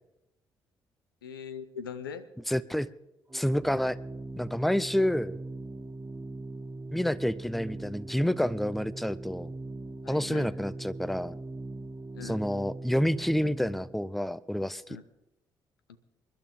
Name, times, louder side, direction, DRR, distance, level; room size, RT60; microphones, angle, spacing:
voice 1, 1.2-2.3 10.0-10.5 12.1-12.4 14.9-15.0 15.9-16.0, left 7 dB, 85° left, 13 dB, 0.8 m, -41 dB
voice 2, 2.5-2.9 3.3-4.0 4.4-5.4 6.9-9.5 10.1-11.3 12.2-14.8, equal, ahead, 19 dB, 0.7 m, -28 dB
Organ, 3.3-14.0, right 2 dB, 20° right, 1.9 m, -41 dB
28.0 x 12.0 x 3.7 m, 0.97 s
figure-of-eight pair, 45°, 11 cm